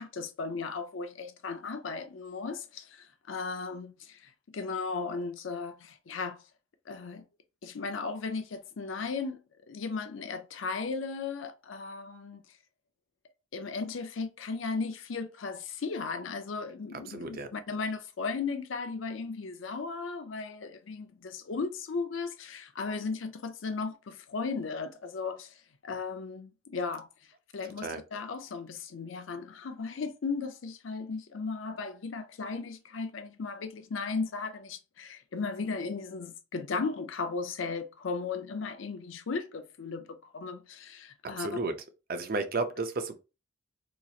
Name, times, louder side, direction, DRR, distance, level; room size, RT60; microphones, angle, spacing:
voice 1, 0.0-6.4 6.9-7.2 7.6-9.4 9.7-12.4 13.5-25.5 25.8-27.1 27.5-41.5, left 4 dB, 80° left, 0.5 m, -36 dB
voice 2, 16.9-17.5 27.8-28.0 41.2-41.8 42.1-43.1, right 3 dB, 50° right, 0.6 m, -33 dB
3.9 x 3.0 x 2.4 m
head